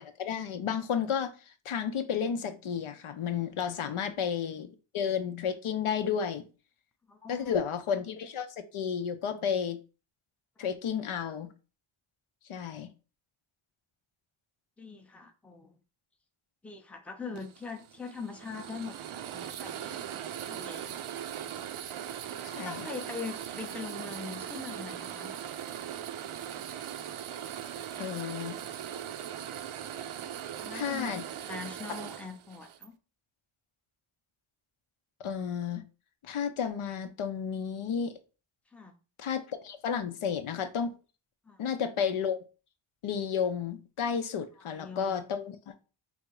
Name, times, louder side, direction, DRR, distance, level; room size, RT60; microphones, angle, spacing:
voice 1, 0.0-1.3 1.6-6.5 7.3-9.8 10.6-11.5 12.5-12.9 22.4-22.9 28.0-28.6 30.7-31.2 35.2-35.8 36.2-38.1 39.2-40.9 41.6-42.4 43.0-45.7, left 7 dB, 85° left, 0.7 m, -32 dB
voice 2, 7.1-7.5 10.6-10.7 14.8-15.8 16.6-20.9 22.5-25.3 30.6-33.0 38.7-38.9 41.5-41.6 44.7-45.3, left 4 dB, 5° left, 0.5 m, -42 dB
sound 1, 17.4-32.9, right 10 dB, 80° right, 0.5 m, -40 dB
3.5 x 2.6 x 4.6 m
wide cardioid pair, 110°, 49 cm